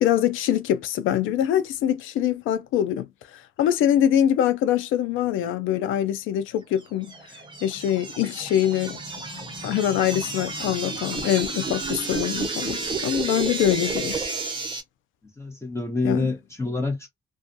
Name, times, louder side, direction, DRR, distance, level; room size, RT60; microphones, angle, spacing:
voice 1, 0.0-3.1 3.3-7.1 7.6-9.0 9.6-14.2 16.0-16.3, left 11 dB, 85° left, 0.5 m, -24 dB
sound 1, 6.8-14.8, right 3 dB, 25° right, 0.9 m, -31 dB
voice 2, 15.4-17.1, left 3 dB, 15° left, 1.0 m, -27 dB
2.4 x 2.3 x 2.6 m
cardioid pair, 90°, 20 cm